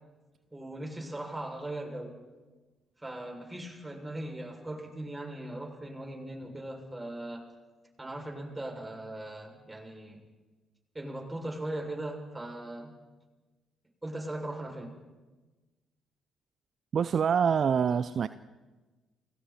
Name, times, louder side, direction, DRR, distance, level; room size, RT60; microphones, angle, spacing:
voice 1, 0.5-2.2 3.0-7.4 8.0-10.2 10.9-12.9 14.0-14.9, right 1 dB, 15° right, 1 dB, 6.7 m, -39 dB
voice 2, 16.9-18.3, right 7 dB, 50° right, 14 dB, 0.6 m, -25 dB
29.5 x 20.0 x 4.4 m, 1.2 s
hypercardioid pair, 45°, 0 cm